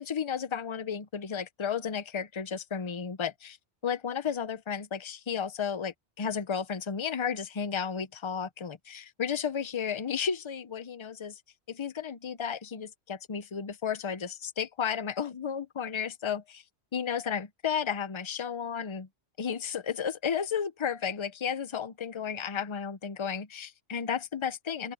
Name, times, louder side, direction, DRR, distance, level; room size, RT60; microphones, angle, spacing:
voice 1, 0.0-3.6 3.8-11.4 11.7-16.6 16.9-19.1 19.4-24.9, left 7 dB, 30° left, 0.7 m, -33 dB
open air
omnidirectional pair, 1.2 m